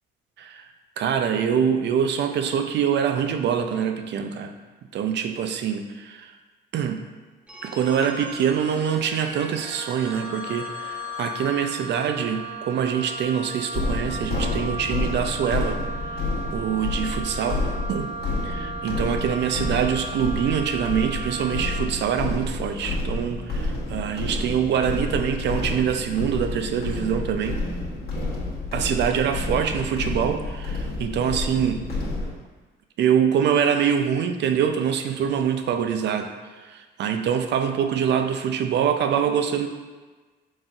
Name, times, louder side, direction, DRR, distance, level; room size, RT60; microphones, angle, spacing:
voice 1, 1.0-4.5 4.9-6.3 6.7-7.0 7.6-15.8 16.1-16.2 16.5-17.6 17.9-18.1 18.4-27.6 28.7-31.8 33.0-36.3 36.6-39.7, right 8 dB, 60° right, 6 dB, 0.4 m, -24 dB
Telephone, 7.5-13.2, equal, 5° right, 0.8 m, -43 dB
Wind instrument woodwind instrument, 9.4-21.9, right 1 dB, 35° right, 0.9 m, -36 dB
sound 1, 13.7-32.3, left 2 dB, 50° left, 1.1 m, -29 dB
4.0 x 3.8 x 2.4 m, 1.3 s
cardioid pair, 90°, 20 cm